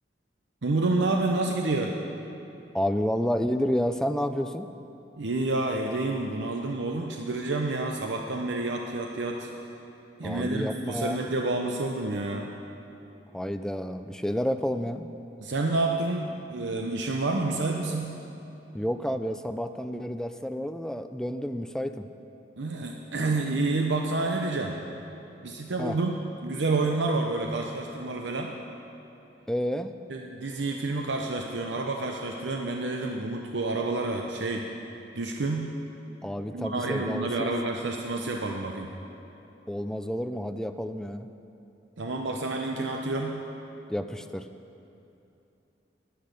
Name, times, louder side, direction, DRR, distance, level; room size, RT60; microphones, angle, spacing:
voice 1, 0.6-1.9 5.2-9.5 10.2-12.5 15.4-18.1 22.6-24.8 25.4-26.1 26.4-28.5 30.1-34.7 35.1-35.7 36.5-38.9 42.0-43.4, right 2 dB, 80° right, 2 dB, 0.7 m, -29 dB
voice 2, 2.7-4.7 10.2-11.3 13.3-15.1 18.7-22.1 25.8-26.0 29.5-29.9 36.2-37.5 39.7-41.3 43.9-44.5, equal, 5° left, 9 dB, 0.3 m, -30 dB
10.5 x 10.0 x 6.6 m, 2.9 s
head